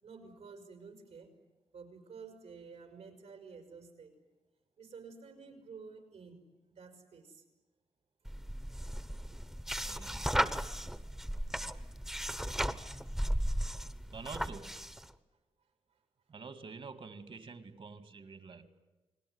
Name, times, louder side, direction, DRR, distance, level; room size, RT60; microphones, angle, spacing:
voice 1, 0.0-1.3 1.7-4.2 4.8-6.4 6.7-7.4, right 5 dB, 85° right, 5 dB, 5.4 m, -51 dB
sound 1, 8.3-15.1, equal, 5° right, 1.0 m, -35 dB
voice 2, 9.8-10.6 14.1-14.8 16.3-18.7, right 4 dB, 55° right, 11 dB, 2.1 m, -48 dB
29.0 x 20.0 x 9.6 m, 1.1 s
wide cardioid pair, 105°, 11 cm